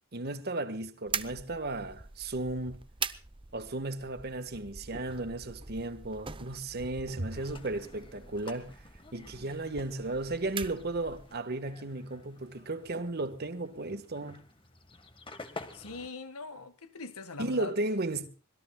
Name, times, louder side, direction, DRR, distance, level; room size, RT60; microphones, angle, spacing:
voice 1, 0.1-2.8 3.5-8.8 9.1-14.4 17.4-18.3, right 2 dB, 45° right, 1.4 m, -35 dB
sound 1, 1.1-11.4, right 6 dB, 25° right, 0.8 m, -43 dB
sound 2, 7.3-16.1, left 3 dB, 25° left, 1.6 m, -50 dB
voice 2, 15.7-17.7, left 3 dB, 80° left, 1.6 m, -42 dB
26.0 x 20.5 x 2.3 m
head